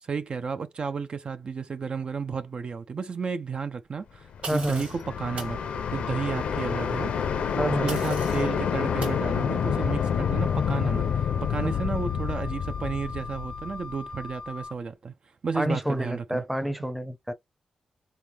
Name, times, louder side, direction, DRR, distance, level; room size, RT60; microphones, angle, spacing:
voice 1, 0.0-5.6 5.9-7.1 7.5-15.1 15.4-16.4, right 5 dB, 55° right, 0.5 m, -32 dB
sound 1, 4.3-14.3, left 7 dB, 90° left, 0.6 m, -28 dB
voice 2, 4.4-4.8 7.6-7.9 11.7-11.8 15.5-17.3, equal, 5° right, 0.7 m, -28 dB
sound 2, 4.4-5.0 5.4-5.6 7.9-8.5 9.0-9.2, right 3 dB, 75° right, 1.8 m, -38 dB
Wind instrument woodwind instrument, 5.1-14.7, left 4 dB, 45° left, 0.4 m, -40 dB
4.1 x 3.5 x 2.9 m
cardioid pair, 75°, 2 cm